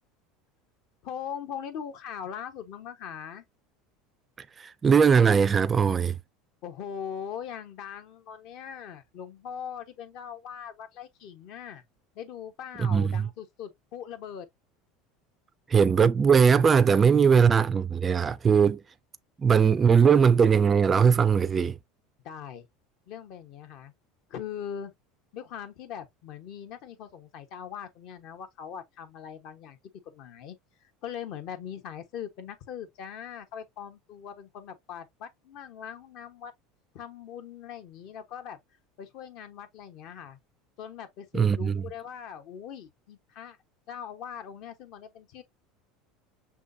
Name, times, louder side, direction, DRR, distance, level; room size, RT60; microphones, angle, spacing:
voice 1, 1.0-3.4 6.6-11.8 12.1-14.5 22.2-22.7 23.1-23.9 24.3-24.9 25.3-29.8 30.0-30.6 31.0-36.5 36.9-38.6 39.0-40.4 40.8-43.6 43.9-45.4, left 8 dB, 60° left, 1.2 m, -40 dB
voice 2, 4.6-6.2 12.8-13.2 15.7-18.8 19.4-21.8 41.3-41.8, right 6 dB, 25° right, 0.4 m, -20 dB
6.1 x 2.9 x 2.7 m
supercardioid pair, 120°, 0 cm